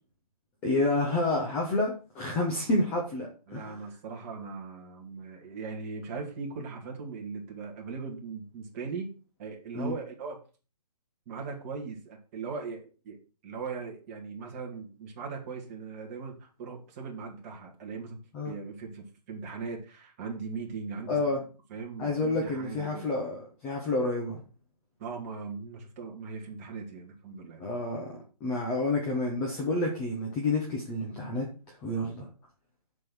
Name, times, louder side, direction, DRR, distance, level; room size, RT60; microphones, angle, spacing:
voice 1, 0.6-3.7 9.7-9.9 18.3-18.5 21.1-21.4 22.0-24.4 27.6-31.5 31.8-32.3, left 2 dB, 5° left, 0 dB, 0.5 m, -29 dB
voice 2, 3.5-9.1 9.4-10.4 11.3-21.1 21.7-23.1 25.0-27.6, right 5 dB, 20° right, 0 dB, 1.9 m, -39 dB
7.5 x 5.4 x 6.1 m, 0.36 s
hypercardioid pair, 165°, 21 cm